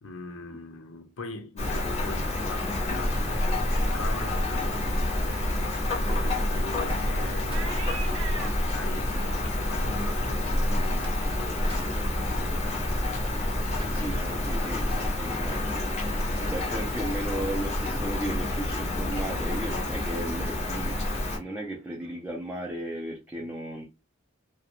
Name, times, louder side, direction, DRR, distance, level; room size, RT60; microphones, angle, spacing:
voice 1, 0.0-4.9 5.2-8.2 8.7-13.1, left 3 dB, 75° left, 0.6 m, -42 dB
Rain, 1.6-21.4, left 2 dB, 35° left, 0.6 m, -30 dB
Buzz, 2.9-15.1, equal, 25° right, 0.8 m, -31 dB
sound 1, 5.7-12.1 12.4-12.9 13.2-15.7 16.0-16.4 16.7-16.9 17.3-18.1 18.4-18.7 19.1-19.3 19.6-20.0 20.3-22.1, right 4 dB, 80° right, 0.6 m, -46 dB
voice 2, 13.8-21.0 21.3-23.8, right 1 dB, 10° right, 0.4 m, -35 dB
2.3 x 2.0 x 2.9 m
head